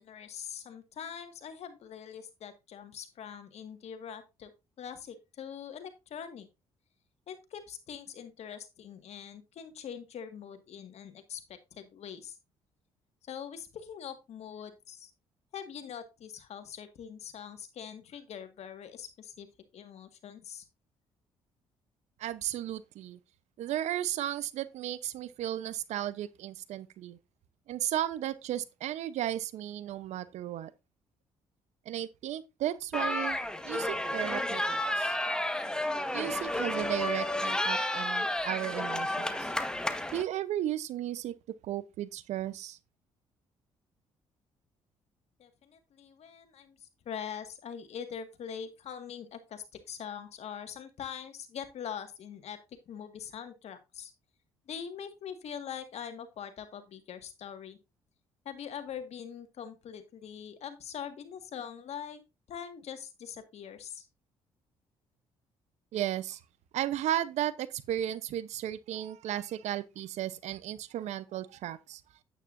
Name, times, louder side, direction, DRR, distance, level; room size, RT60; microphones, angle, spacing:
voice 1, 0.0-4.5 4.8-6.5 7.3-12.4 13.2-15.1 15.5-19.5 19.7-20.7 45.4-54.1 54.7-57.8 58.5-62.2 62.5-64.1, left 8 dB, 65° left, 1.9 m, -43 dB
voice 2, 22.2-23.2 23.6-27.2 27.7-30.7 31.9-35.2 36.1-39.5 40.1-41.3 41.6-42.8 65.9-66.4 66.7-72.0, right 12 dB, 70° right, 0.9 m, -35 dB
sound 1, 32.9-40.2, left 1 dB, 5° left, 1.4 m, -31 dB
9.2 x 9.2 x 2.6 m
supercardioid pair, 65°, 12 cm